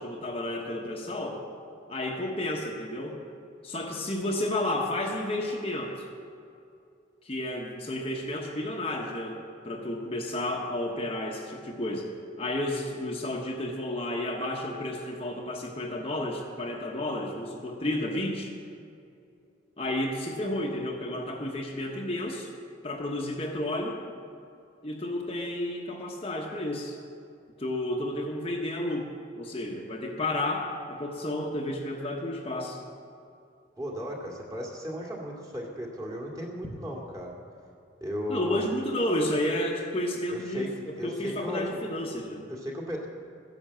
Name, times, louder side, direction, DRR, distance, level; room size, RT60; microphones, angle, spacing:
voice 1, 0.0-1.4 1.9-3.2 3.6-6.0 7.2-12.1 12.4-18.5 19.8-22.5 22.8-24.0 24.8-27.0 27.6-29.1 29.4-32.8 38.3-42.4, left 1 dB, 30° left, 0 dB, 1.1 m, -31 dB
voice 2, 33.8-37.3 38.0-38.6 40.3-40.7 41.0-41.8 42.5-43.1, equal, 20° right, -2 dB, 2.1 m, -35 dB
14.0 x 10.5 x 7.5 m, 2.5 s
head